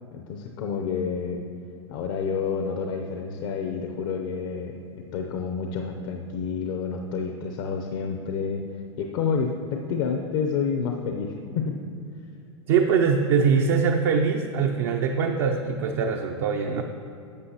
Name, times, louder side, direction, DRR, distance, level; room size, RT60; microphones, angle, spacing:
voice 1, 0.1-1.4 1.9-4.8 5.1-8.6 9.0-11.8, left 6 dB, 60° left, 3 dB, 0.7 m, -29 dB
voice 2, 12.7-16.8, right 6 dB, 60° right, 3 dB, 0.6 m, -22 dB
12.0 x 7.6 x 2.8 m, 2.7 s
hypercardioid pair, 100°, 15 cm